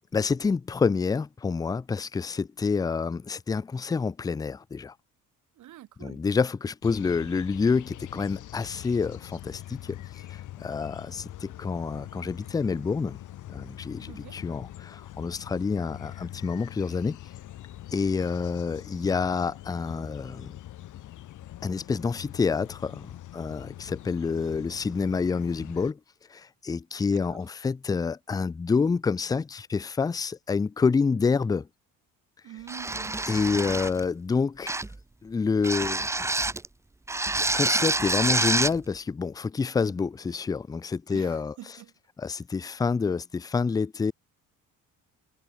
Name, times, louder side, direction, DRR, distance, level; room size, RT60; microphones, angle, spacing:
voice 1, 0.1-4.9 6.0-10.0 10.6-13.2 13.5-17.2 17.9-20.5 21.6-23.1 23.3-26.0 26.3-31.7 33.3-34.7 35.2-36.0 37.5-41.5 42.2-44.1, left 5 dB, 10° left, 0.4 m, -28 dB
voice 2, 5.6-6.2 14.1-14.4 27.0-27.5 32.4-33.2 41.1-41.9 42.2-42.4, right 13 dB, 60° right, 5.7 m, -46 dB
sound 1, 6.8-25.9, left 13 dB, 65° left, 5.7 m, -43 dB
sound 2, 32.7-34.0 34.7-35.0 35.6-36.7 37.1-38.8, right 2 dB, 10° right, 1.0 m, -27 dB
cardioid pair, 150°, 33 cm